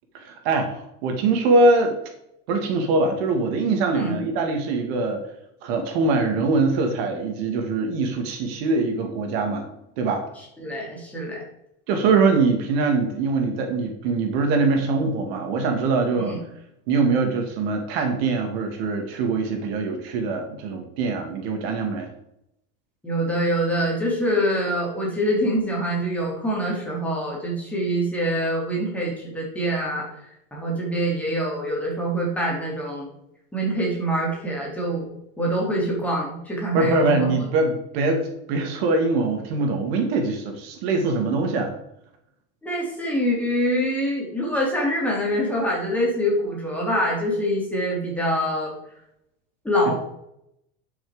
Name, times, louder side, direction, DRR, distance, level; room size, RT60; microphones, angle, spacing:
voice 1, 0.1-2.0 2.5-5.2 5.6-9.7 10.0-10.3 11.9-16.3 16.9-22.1 36.7-41.7, right 3 dB, 70° right, 4 dB, 2.2 m, -23 dB
voice 2, 10.6-11.4 16.2-16.4 23.0-33.1 33.5-35.1 35.4-37.3 42.6-48.7 49.6-49.9, equal, 5° left, -4 dB, 3.2 m, -25 dB
11.0 x 6.3 x 5.1 m, 0.80 s
cardioid pair, 160°, 32 cm